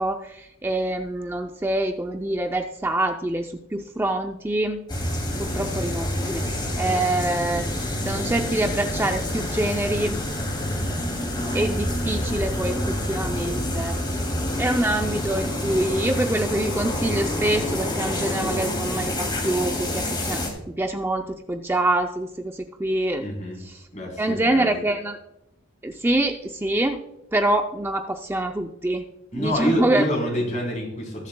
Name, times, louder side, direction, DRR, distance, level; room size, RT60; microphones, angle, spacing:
voice 1, 0.0-4.8 5.4-6.5 6.8-7.7 8.0-10.2 11.5-14.0 14.6-20.4 20.7-23.3 23.6-23.8 24.2-25.2 25.8-27.0 27.3-29.0 29.3-30.0, right 1 dB, 10° right, 4 dB, 0.5 m, -25 dB
sound 1, 4.9-20.5, left 1 dB, 25° left, 2.6 m, -27 dB
voice 2, 5.3-5.6 23.2-23.6 23.9-24.8 29.3-31.3, equal, 40° left, -1 dB, 3.8 m, -27 dB
21.0 x 7.4 x 2.3 m, 0.86 s
head